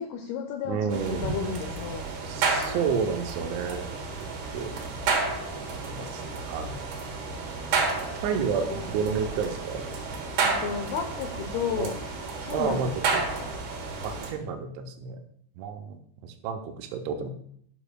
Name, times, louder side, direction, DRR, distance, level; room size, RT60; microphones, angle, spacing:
voice 1, 0.0-2.0 8.7-8.9 10.4-12.0 12.4-13.5, left 6 dB, 85° left, 5 dB, 2.2 m, -33 dB
voice 2, 0.7-1.3 2.3-3.9 4.5-4.7 5.9-6.8 8.2-9.8 10.2-10.3 11.7-11.9 12.5-13.3 14.0-15.2 15.6-17.3, right 6 dB, 85° right, 4 dB, 3.0 m, -30 dB
sound 1, 0.9-14.3, right 4 dB, 65° right, 3.1 m, -31 dB
11.0 x 6.9 x 2.3 m, 0.65 s
omnidirectional pair, 5.2 m